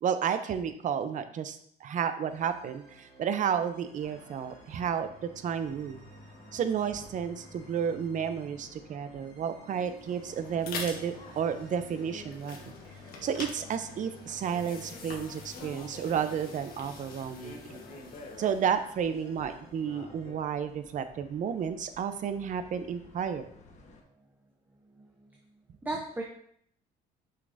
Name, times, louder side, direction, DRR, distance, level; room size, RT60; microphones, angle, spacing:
voice 1, 0.0-5.1 5.4-6.0 6.5-12.7 13.2-17.8 18.4-23.5, right 7 dB, 50° right, 10 dB, 0.6 m, -32 dB
sound 1, 2.3-20.3, right 2 dB, 85° right, 2.3 m, -55 dB
sound 2, 4.0-24.0, left 2 dB, 45° left, 1.1 m, -54 dB
sound 3, 9.8-19.7, left 4 dB, 60° left, 1.3 m, -45 dB
voice 2, 25.0-25.3 25.8-26.2, right 2 dB, 10° right, 0 dB, 0.7 m, -36 dB
6.4 x 5.7 x 2.7 m, 0.67 s
cardioid pair, 110°, 17 cm